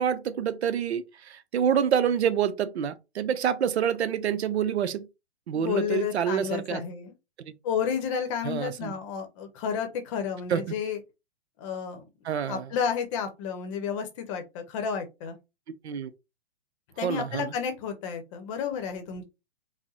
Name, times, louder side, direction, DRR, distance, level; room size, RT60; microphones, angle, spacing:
voice 1, 0.0-5.1 5.5-6.8 8.4-8.9 10.5-10.8 12.2-12.7 15.8-16.1 17.0-17.5, right 8 dB, 80° right, 0.7 m, -27 dB
voice 2, 5.5-7.1 7.6-11.0 11.6-12.0 12.5-15.4 17.0-19.2, left 7 dB, 30° left, 0.8 m, -31 dB
4.8 x 2.1 x 2.9 m
hypercardioid pair, 150°, 32 cm